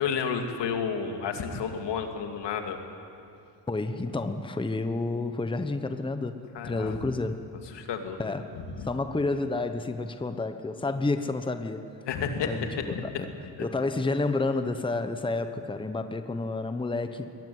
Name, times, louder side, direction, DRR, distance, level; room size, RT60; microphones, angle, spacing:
voice 1, 0.0-2.8 6.5-7.1 7.7-8.2 8.7-8.9 12.0-13.2, left 6 dB, 75° left, 5 dB, 2.7 m, -31 dB
voice 2, 3.7-7.3 8.2-11.9 12.4-12.7 13.2-13.3 13.6-17.4, left 3 dB, 10° left, 9 dB, 1.1 m, -30 dB
22.5 x 20.0 x 9.5 m, 2.6 s
cardioid pair, 110°, 42 cm